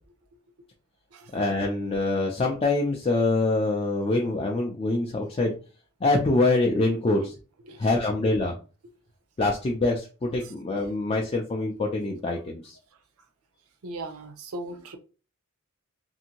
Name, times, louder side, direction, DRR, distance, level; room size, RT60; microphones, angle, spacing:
voice 1, 1.3-5.6 6.0-7.3 7.8-8.5 9.4-12.8, left 2 dB, 25° left, 0.4 m, -25 dB
voice 2, 13.8-15.0, right 2 dB, 80° right, 0.6 m, -38 dB
2.7 x 2.5 x 2.8 m
head